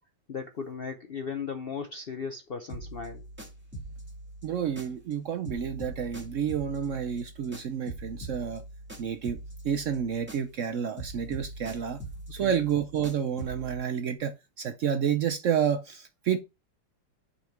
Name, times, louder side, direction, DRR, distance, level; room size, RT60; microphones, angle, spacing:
voice 1, 0.3-3.2 12.4-12.6, left 6 dB, 65° left, 0.5 m, -36 dB
sound 1, 2.7-5.2 5.4-10.7 11.0-13.8, right 1 dB, 5° right, 1.7 m, -43 dB
voice 2, 4.4-8.6 9.0-9.4 9.6-12.0 12.3-16.4, right 8 dB, 70° right, 0.7 m, -29 dB
5.9 x 4.2 x 5.8 m
omnidirectional pair, 1.9 m